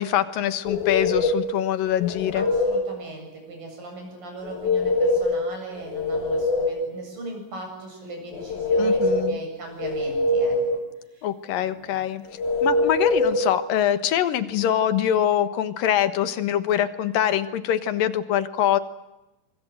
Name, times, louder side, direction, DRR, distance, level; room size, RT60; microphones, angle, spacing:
voice 1, 0.0-2.4 8.8-9.4 11.2-12.2 12.6-18.8, left 10 dB, 80° left, 12 dB, 3.1 m, -24 dB
sound 1, 0.7-1.5 2.0-2.9 4.4-5.4 5.8-6.9 8.3-9.4 9.8-10.8 12.4-13.4, left 2 dB, 60° left, 3.5 m, -23 dB
voice 2, 2.4-10.8 11.1-11.3 11.6-12.0, right 2 dB, 75° right, 2 dB, 9.6 m, -39 dB
25.5 x 24.0 x 8.0 m, 0.99 s
omnidirectional pair, 4.0 m